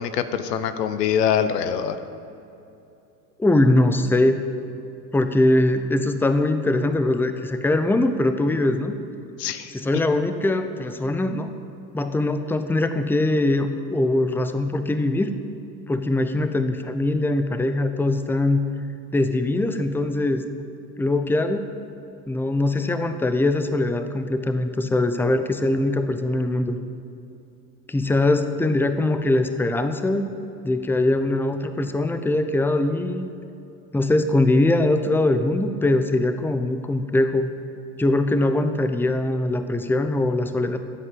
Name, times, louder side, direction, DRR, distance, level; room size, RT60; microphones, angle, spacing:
voice 1, 0.0-2.0 9.4-9.7, left 8 dB, 75° left, 11 dB, 0.9 m, -24 dB
voice 2, 3.4-4.4 5.1-8.9 9.7-11.5 11.9-15.3 15.9-18.6 19.1-20.4 21.0-21.6 22.3-26.8 27.9-30.3 30.6-33.3 33.9-37.5 38.0-40.8, left 2 dB, 5° left, 9 dB, 0.8 m, -22 dB
15.0 x 8.3 x 7.6 m, 2.8 s
figure-of-eight pair, 70°, 49 cm